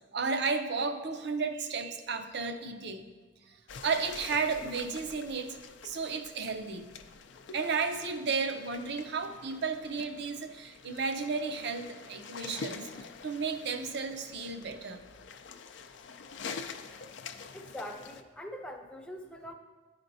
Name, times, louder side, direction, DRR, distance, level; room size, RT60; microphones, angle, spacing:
voice 1, 0.1-3.0 3.5-3.6 3.8-5.6 5.8-6.9 7.5-15.0, right 4 dB, 65° right, 7 dB, 0.5 m, -33 dB
sound 1, 3.7-18.2, left 5 dB, 75° left, 0.4 m, -46 dB
voice 2, 17.5-19.5, equal, 5° left, 3 dB, 0.5 m, -43 dB
11.0 x 4.3 x 2.6 m, 1.3 s
head